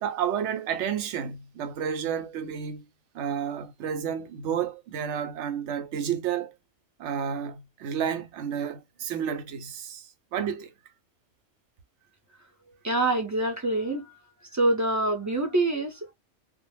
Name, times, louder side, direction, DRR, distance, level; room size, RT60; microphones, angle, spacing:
voice 1, 0.0-2.9 3.1-6.6 7.0-10.7, right 8 dB, 90° right, 0.9 m, -31 dB
voice 2, 12.8-14.2 14.5-16.1, right 2 dB, 20° right, 0.5 m, -25 dB
2.2 x 2.0 x 3.0 m
omnidirectional pair, 1.2 m